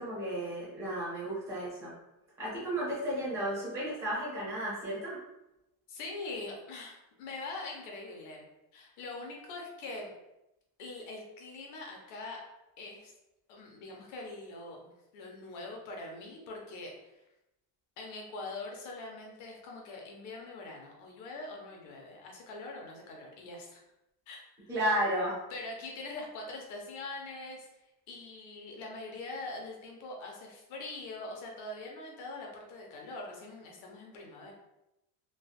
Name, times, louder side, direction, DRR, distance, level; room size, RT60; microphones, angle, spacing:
voice 1, 0.0-1.9 2.4-5.2 24.7-25.4, right 1 dB, 5° right, -9 dB, 0.7 m, -33 dB
voice 2, 5.9-8.5 8.7-10.1 10.8-12.4 12.8-13.1 13.5-17.2 18.0-23.8 24.3-24.7 25.5-27.7 28.1-34.5, left 2 dB, 40° left, 0 dB, 0.5 m, -43 dB
3.3 x 2.2 x 2.3 m, 0.92 s
cardioid pair, 175°, 49 cm